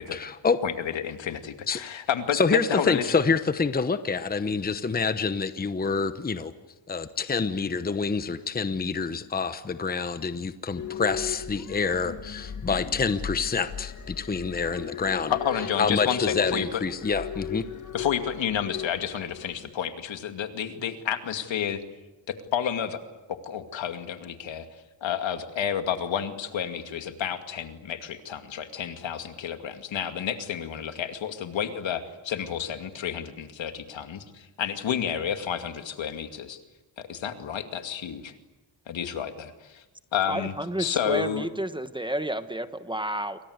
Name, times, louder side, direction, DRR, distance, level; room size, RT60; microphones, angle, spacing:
voice 1, 0.1-0.6 1.7-1.8 2.3-6.5 6.9-15.3 15.8-17.6, left 5 dB, 20° left, 11 dB, 1.0 m, -27 dB
voice 2, 0.6-3.1 15.3-16.8 17.9-21.8 22.3-23.0 23.3-24.7 25.0-36.6 37.0-38.3 38.9-39.8 40.1-41.5, left 8 dB, 75° left, 7 dB, 2.5 m, -30 dB
sound 1, 10.8-19.6, left 8 dB, 40° left, 2.3 m, -36 dB
voice 3, 40.3-43.4, right 1 dB, 10° right, 10 dB, 1.2 m, -31 dB
28.5 x 24.5 x 8.1 m, 1.1 s
cardioid pair, 125°, 45 cm